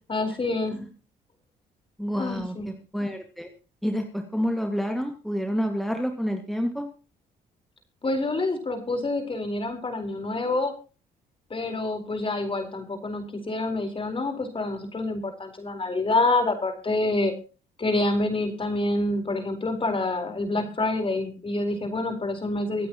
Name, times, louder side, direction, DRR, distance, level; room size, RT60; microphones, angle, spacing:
voice 1, 0.1-0.9 2.2-2.7 8.0-10.7 11.5-17.3 17.8-22.9, left 2 dB, 30° left, 6 dB, 4.4 m, -27 dB
voice 2, 2.0-3.5 3.8-6.9, equal, ahead, 3 dB, 2.0 m, -28 dB
25.0 x 8.5 x 3.0 m, 0.35 s
cardioid pair, 75°, 18 cm